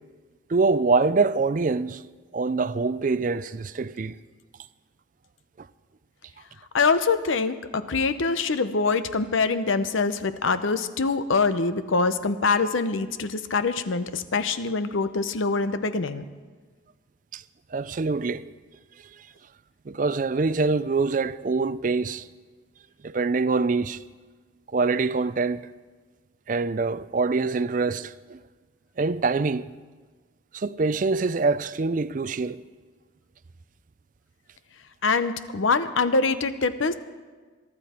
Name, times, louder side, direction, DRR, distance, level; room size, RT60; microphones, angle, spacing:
voice 1, 0.5-2.0 2.3-4.1 5.6-5.7 17.3-17.4 17.7-18.5 19.2-19.3 19.9-22.3 23.0-24.0 24.7-25.7 26.5-28.4 29.0-29.7 30.5-32.6, right 4 dB, 40° right, 0.4 m, -25 dB
voice 2, 6.7-16.2 35.0-36.9, left 4 dB, 85° left, 0.8 m, -24 dB
22.5 x 12.0 x 4.4 m
head